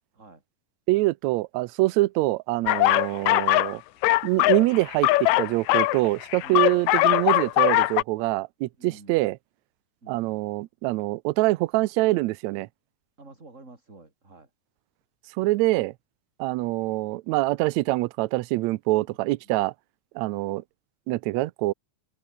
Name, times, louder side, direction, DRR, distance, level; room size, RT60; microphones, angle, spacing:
voice 1, 0.9-3.8 4.2-9.4 10.1-12.7 15.4-15.9 16.4-19.7 20.2-20.6 21.1-21.7, right 19 dB, 75° right, 1.8 m, -25 dB
sound 1, 2.7-3.7 4.0-8.0, left 18 dB, 80° left, 1.9 m, -21 dB
voice 2, 6.4-6.8 8.8-9.3 10.0-10.4 13.2-14.5 19.1-19.2 19.4-19.6, right 3 dB, 25° right, 4.4 m, -50 dB
omnidirectional pair, 3.5 m